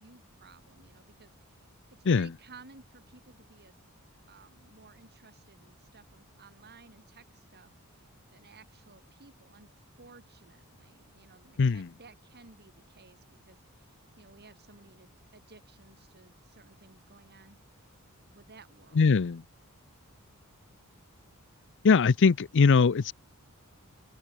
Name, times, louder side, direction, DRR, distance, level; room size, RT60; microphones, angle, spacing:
voice 1, 0.0-1.6 1.9-3.7 4.3-9.7 10.0-17.6 18.3-19.1, right 4 dB, 50° right, 5.0 m, -56 dB
voice 2, 11.6-11.9 19.0-19.4 21.8-23.1, left 5 dB, 55° left, 0.5 m, -21 dB
open air
head